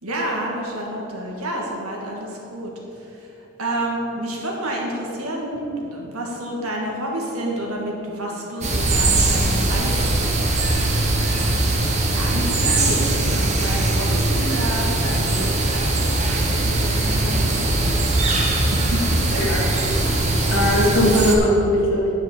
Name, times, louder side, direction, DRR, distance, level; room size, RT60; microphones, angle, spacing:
voice 1, 0.0-2.7 3.0-3.3 3.6-10.2 11.7-16.1 16.5-17.5 17.8-20.0, right 1 dB, 80° right, -2 dB, 1.9 m, -29 dB
sound 1, 8.6-21.4, right 2 dB, 30° right, 1.1 m, -20 dB
voice 2, 20.5-22.2, equal, 60° left, -4 dB, 2.0 m, -19 dB
10.0 x 5.6 x 6.6 m, 2.9 s
head